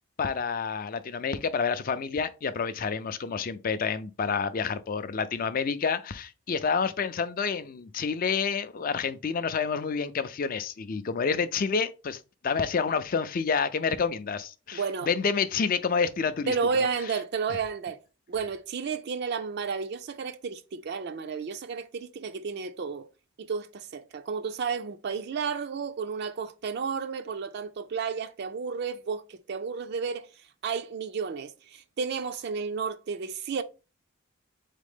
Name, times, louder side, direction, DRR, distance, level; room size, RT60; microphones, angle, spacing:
voice 1, 0.2-16.9, left 5 dB, 40° left, 0.4 m, -29 dB
voice 2, 14.7-15.1 16.5-18.0 18.3-23.1 23.4-30.3 30.6-33.6, right 5 dB, 50° right, 0.4 m, -32 dB
4.1 x 3.7 x 3.5 m
head